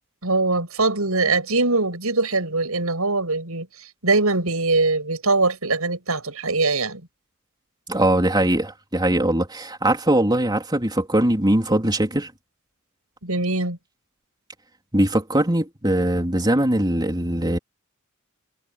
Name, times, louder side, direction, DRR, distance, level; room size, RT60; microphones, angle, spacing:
voice 1, 0.2-7.0 13.2-13.8, right 3 dB, 80° right, 7.5 m, -22 dB
voice 2, 7.9-12.3 14.9-17.6, right 1 dB, 20° right, 3.8 m, -21 dB
head